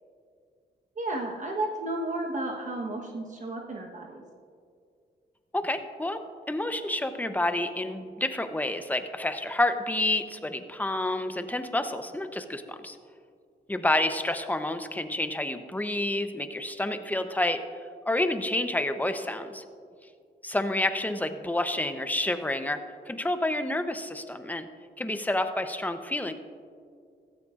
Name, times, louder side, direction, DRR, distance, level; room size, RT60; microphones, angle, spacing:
voice 1, 1.0-4.2, right 2 dB, 45° right, 1 dB, 1.2 m, -33 dB
voice 2, 5.5-6.2 6.5-13.0 13.7-17.6 18.0-19.6 20.4-24.7 25.0-26.3, left 1 dB, 10° left, 9 dB, 0.7 m, -29 dB
15.5 x 13.5 x 2.5 m, 2.3 s
cardioid pair, 95°, 18 cm